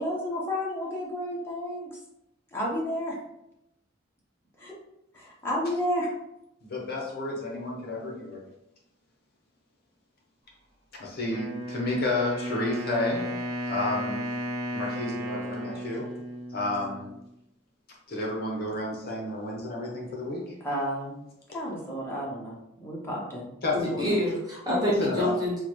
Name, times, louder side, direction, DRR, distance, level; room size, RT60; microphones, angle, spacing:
voice 1, 0.0-2.0 2.5-3.1 4.6-4.7 5.1-6.1 20.6-21.2 21.5-23.5 24.7-24.9, equal, 10° left, -5 dB, 0.8 m, -31 dB
voice 2, 6.6-8.4 11.0-13.3 13.7-14.3 14.7-16.1 16.5-17.1 18.1-20.5 23.6-24.0 24.8-25.4, left 2 dB, 50° left, -2 dB, 0.7 m, -31 dB
Wind instrument woodwind instrument, 11.3-17.3, equal, 85° right, 1.1 m, -34 dB
voice 3, 23.7-25.6, equal, 20° right, -6 dB, 1.1 m, -27 dB
3.7 x 2.1 x 3.0 m, 0.85 s
head